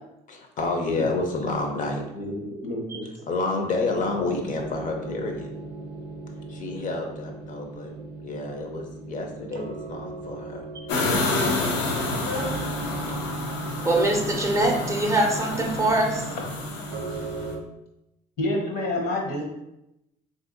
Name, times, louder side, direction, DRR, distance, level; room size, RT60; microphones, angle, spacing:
voice 1, 0.3-2.0 3.3-5.5 6.5-7.9 8.2-10.6, left 3 dB, 50° left, 3 dB, 0.5 m, -29 dB
voice 2, 2.1-3.1 18.4-19.5, left 1 dB, 70° left, 0 dB, 0.9 m, -28 dB
sound 1, 3.9-17.6, right 3 dB, 90° right, 0.4 m, -37 dB
sound 2, 10.9-17.5, left 2 dB, 90° left, 0.6 m, -29 dB
voice 3, 13.9-16.2, right 1 dB, 15° right, 1 dB, 0.5 m, -23 dB
3.4 x 2.6 x 2.5 m, 0.88 s
cardioid pair, 110°, 17 cm